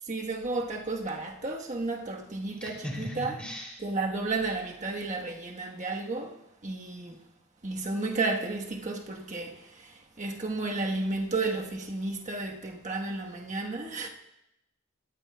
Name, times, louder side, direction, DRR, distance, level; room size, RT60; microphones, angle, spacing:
voice 1, 0.1-3.4 3.8-6.4 6.6-7.2 7.6-14.1, right 3 dB, 35° right, 1.3 m, -32 dB
voice 2, 2.6-3.7, equal, 5° left, 3.0 m, -38 dB
19.5 x 14.0 x 2.3 m
head